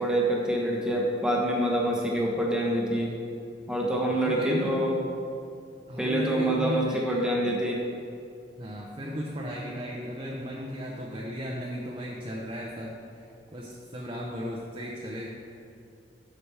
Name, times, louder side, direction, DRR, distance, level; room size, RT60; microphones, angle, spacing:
voice 1, 0.0-3.1 3.7-4.9 6.0-7.8, right 1 dB, 5° right, -3 dB, 1.1 m, -26 dB
voice 2, 1.9-2.3 4.1-4.9 5.9-7.2 8.6-15.3, equal, 30° right, -3 dB, 0.8 m, -36 dB
11.5 x 5.9 x 3.4 m, 2.6 s
head